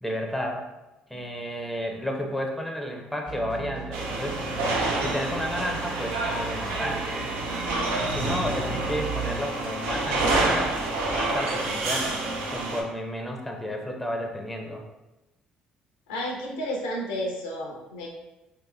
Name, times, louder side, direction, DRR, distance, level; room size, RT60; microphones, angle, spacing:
voice 1, 0.0-0.7 1.1-4.4 5.0-7.3 8.0-10.8 11.1-12.2 12.5-14.8, equal, 5° left, 2 dB, 0.6 m, -32 dB
sound 1, 3.3-9.4, right 5 dB, 60° right, 1.2 m, -37 dB
sound 2, 3.9-12.8, right 2 dB, 75° right, 0.5 m, -28 dB
voice 2, 16.1-18.1, equal, 85° left, -1 dB, 0.6 m, -31 dB
3.2 x 2.8 x 2.2 m, 1.0 s
hypercardioid pair, 60°, 3 cm